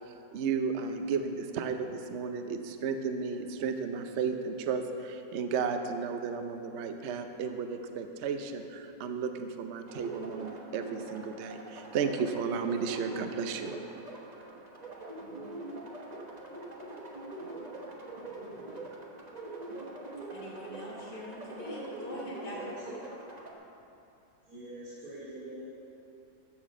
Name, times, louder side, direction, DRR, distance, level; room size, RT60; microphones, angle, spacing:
voice 1, 0.0-13.7, right 5 dB, 75° right, 7 dB, 0.6 m, -33 dB
sound 1, 9.9-23.5, right 2 dB, 30° right, 0.9 m, -43 dB
voice 2, 20.3-22.6, left 1 dB, 60° left, -5 dB, 2.1 m, -43 dB
voice 3, 22.5-23.0 24.4-25.7, right 1 dB, 50° right, -14 dB, 3.4 m, -44 dB
13.0 x 4.4 x 7.2 m, 2.8 s
omnidirectional pair, 2.0 m